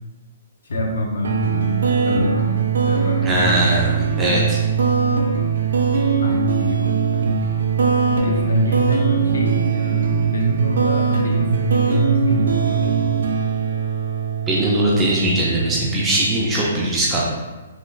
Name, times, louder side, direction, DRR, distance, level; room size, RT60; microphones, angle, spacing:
voice 1, 0.6-3.4 6.2-7.4 8.2-13.2, equal, 70° left, 1 dB, 0.6 m, -25 dB
sound 1, 1.2-16.3, right 6 dB, 70° right, 0.4 m, -21 dB
voice 2, 3.2-4.6 14.5-17.2, right 1 dB, 10° right, -5 dB, 0.4 m, -20 dB
3.1 x 2.2 x 3.1 m, 1.2 s
hypercardioid pair, 180°, 0 cm